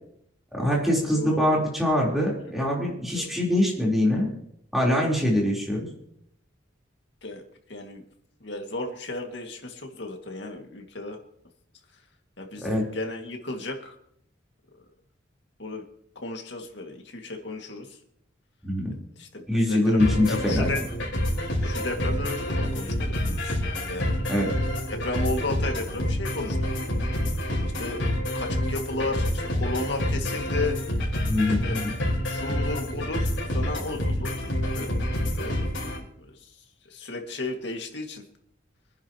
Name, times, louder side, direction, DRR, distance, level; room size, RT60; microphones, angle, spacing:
voice 1, 0.5-4.3 4.7-5.9 12.6-12.8 18.6-18.9 19.5-20.7 24.3-24.5 31.2-31.9, left 1 dB, ahead, -4 dB, 3.9 m, -23 dB
voice 2, 1.1-1.6 3.1-3.3 7.2-7.4 7.7-8.0 8.4-11.2 12.4-13.9 15.6-15.9 16.2-18.0 19.2-20.8 21.6-24.3 24.9-26.8 27.8-28.0 28.3-30.8 31.6-31.8 32.3-34.4 34.7-34.9 35.4-35.6 36.2-36.5 36.9-38.2, left 2 dB, 60° left, 2 dB, 2.2 m, -34 dB
sound 1, 20.0-36.0, left 1 dB, 75° left, 4.5 m, -28 dB
24.5 x 10.5 x 3.0 m, 0.71 s
head